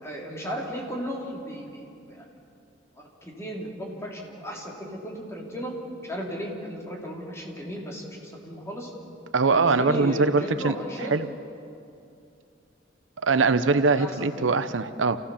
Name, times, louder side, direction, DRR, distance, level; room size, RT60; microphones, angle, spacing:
voice 1, 0.0-2.3 2.9-5.7 6.0-8.9 9.5-11.2 14.0-14.5, equal, 15° left, -2 dB, 3.3 m, -35 dB
voice 2, 9.3-10.8 11.1-11.3 13.2-15.2, right 4 dB, 90° right, 11 dB, 0.8 m, -22 dB
28.5 x 15.5 x 7.1 m, 2.6 s
head